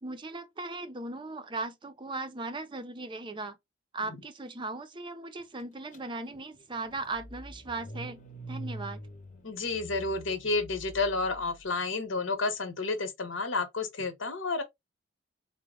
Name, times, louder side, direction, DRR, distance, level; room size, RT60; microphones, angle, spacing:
voice 1, 0.0-3.6 3.9-9.0, right 2 dB, 25° right, 0.5 m, -38 dB
Car / Engine starting, 5.9-6.0 6.3-11.6, right 1 dB, 40° left, 0.8 m, -44 dB
voice 2, 9.4-14.6, left 3 dB, 80° left, 1.0 m, -31 dB
3.9 x 2.1 x 3.6 m
head